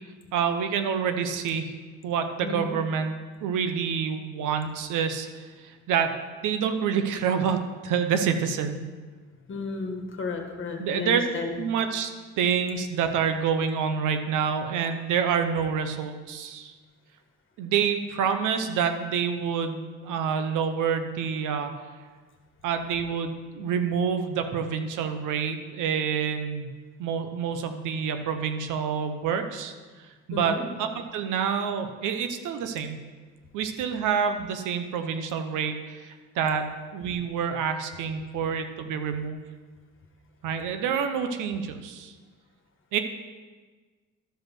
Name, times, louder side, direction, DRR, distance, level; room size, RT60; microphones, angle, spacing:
voice 1, 0.3-1.7 2.0-3.1 3.4-6.2 6.4-8.8 10.8-11.2 11.6-12.1 12.4-16.7 17.6-21.7 22.6-26.7 27.0-29.7 30.3-33.0 33.5-39.4 40.4-42.1 42.9-43.0, right 7 dB, 90° right, 8 dB, 0.9 m, -27 dB
voice 2, 9.5-11.6 30.3-30.6, left 4 dB, 40° left, 3 dB, 1.8 m, -33 dB
12.5 x 5.3 x 6.1 m, 1.4 s
cardioid pair, 90°, 30 cm